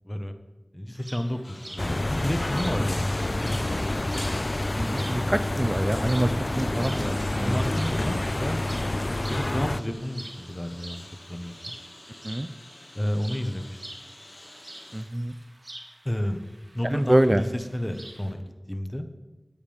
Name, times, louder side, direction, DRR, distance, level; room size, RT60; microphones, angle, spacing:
voice 1, 0.7-4.1 7.4-8.7 9.0-11.5 12.9-13.8 16.0-16.4 16.7-19.1, left 1 dB, 20° left, 6 dB, 1.2 m, -31 dB
sound 1, 1.0-18.3, right 1 dB, 55° right, 1.9 m, -47 dB
Engine, 1.4-15.0, left 1 dB, 75° left, 3.3 m, -49 dB
sound 2, 1.8-9.8, left 1 dB, 50° left, 0.3 m, -28 dB
voice 2, 4.7-7.6 12.2-12.5 14.9-15.3 16.8-17.4, right 1 dB, 25° right, 10 dB, 0.5 m, -25 dB
14.0 x 9.6 x 3.5 m, 1.1 s
wide cardioid pair, 40°, 0 cm